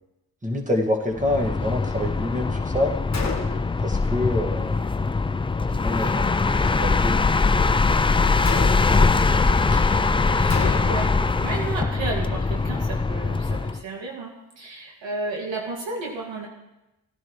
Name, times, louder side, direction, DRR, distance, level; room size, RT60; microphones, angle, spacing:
voice 1, 0.4-3.0 3.8-4.9 5.7-7.4, left 1 dB, 15° right, 1 dB, 1.9 m, -27 dB
sound 1, 1.1-13.8, left 4 dB, 15° left, 0.3 m, -22 dB
Gunshot gunfire, 3.1-3.8 8.4-9.1 10.5-11.2, left 4 dB, 35° left, 1.6 m, -31 dB
voice 2, 9.7-16.5, right 3 dB, 75° right, -1 dB, 2.3 m, -33 dB
17.0 x 10.5 x 3.2 m, 0.96 s
cardioid pair, 75°, 45 cm